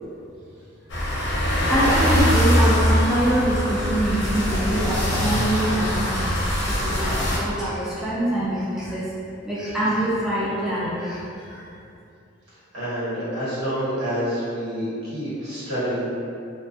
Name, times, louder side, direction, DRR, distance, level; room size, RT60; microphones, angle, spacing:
sound 1, 0.9-7.4, equal, 60° left, 0.5 m, -22 dB
voice 1, 1.3-6.3 6.7-9.1 9.4-11.6, right 1 dB, 5° right, -10 dB, 0.3 m, -25 dB
voice 2, 12.7-16.1, equal, 75° right, -12 dB, 1.2 m, -27 dB
2.5 x 2.3 x 2.4 m, 2.6 s
head